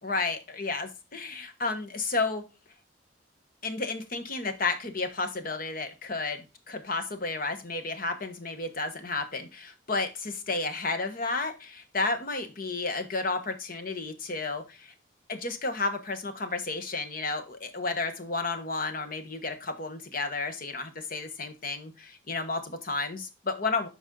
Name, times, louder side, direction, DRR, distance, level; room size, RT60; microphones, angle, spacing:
voice 1, 0.0-2.4 3.6-14.9 15.3-23.9, left 3 dB, 45° left, 8 dB, 1.2 m, -32 dB
8.1 x 5.3 x 3.8 m, 0.29 s
head